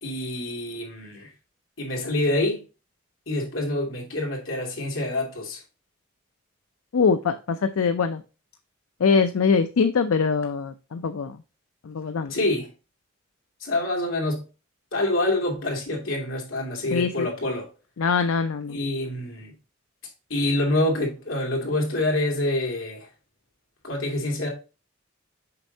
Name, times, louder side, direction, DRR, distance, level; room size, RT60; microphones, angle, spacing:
voice 1, 0.0-1.3 1.8-2.6 3.3-5.6 12.3-12.7 13.6-14.4 14.9-17.7 18.7-19.5 20.3-23.1 23.8-24.5, left 1 dB, 70° left, 2.5 m, -26 dB
voice 2, 6.9-8.2 9.0-11.4 11.8-12.4 16.9-17.3 18.0-18.8, left 5 dB, 85° left, 0.5 m, -23 dB
6.7 x 5.2 x 2.7 m
head